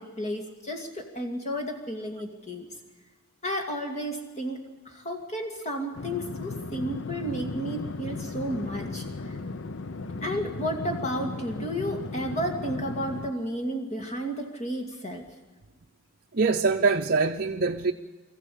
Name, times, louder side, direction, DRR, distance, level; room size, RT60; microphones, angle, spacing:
voice 1, 0.0-2.7 3.4-4.6 4.9-9.4 10.2-15.2, equal, 30° left, 2.4 m, -32 dB
sound 1, 5.9-13.3, left 3 dB, 55° left, 0.7 m, -36 dB
voice 2, 16.3-17.9, right 4 dB, 45° right, 0.6 m, -23 dB
24.0 x 14.5 x 8.5 m
head